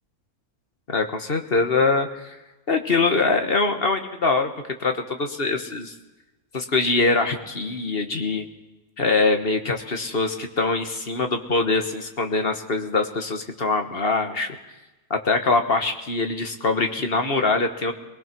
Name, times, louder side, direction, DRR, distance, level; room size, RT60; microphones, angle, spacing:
voice 1, 0.9-2.4 2.7-4.5 4.8-5.9 6.5-8.4 9.0-14.6 15.1-17.9, left 3 dB, 40° left, 6 dB, 1.7 m, -23 dB
23.5 x 20.0 x 6.1 m, 1.0 s
omnidirectional pair, 1.6 m